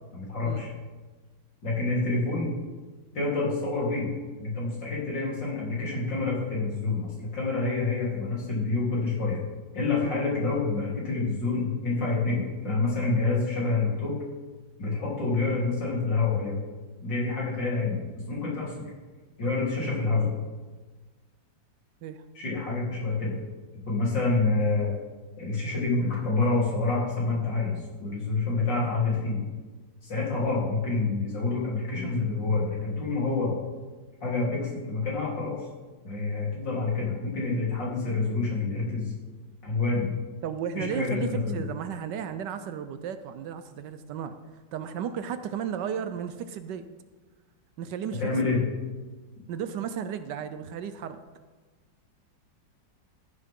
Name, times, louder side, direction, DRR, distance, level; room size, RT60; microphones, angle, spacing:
voice 1, 0.1-0.7 1.6-2.5 3.1-4.1 4.4-9.4 9.7-14.2 14.8-16.5 17.0-18.0 18.3-18.8 19.4-20.3 22.3-23.3 23.9-24.9 25.4-29.4 30.0-33.6 34.2-35.7 36.0-39.1 39.6-40.1 40.7-41.6 48.2-48.6, left 3 dB, 65° left, -6 dB, 4.4 m, -27 dB
voice 2, 40.4-44.3 44.7-46.9 47.8-48.2 49.5-51.2, right 8 dB, 70° right, 10 dB, 1.2 m, -34 dB
14.5 x 11.0 x 3.7 m, 1.3 s
omnidirectional pair, 2.1 m